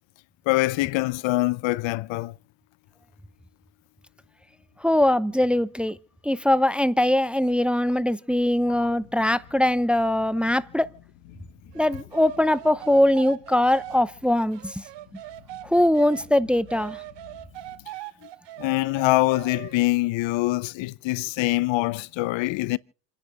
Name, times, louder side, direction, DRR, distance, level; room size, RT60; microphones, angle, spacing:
voice 1, 0.5-2.3 8.8-8.9 18.6-22.8, left 19 dB, 70° left, 0.7 m, -24 dB
voice 2, 4.8-6.0 6.2-10.9 11.7-14.8 15.6-17.0, left 1 dB, ahead, 0.6 m, -22 dB
sound 1, 8.5-17.9, left 9 dB, 85° left, 2.4 m, -52 dB
sound 2, 11.7-16.3 16.7-19.9, right 16 dB, 60° right, 1.1 m, -41 dB
29.0 x 10.5 x 3.5 m
supercardioid pair, 90°, 47 cm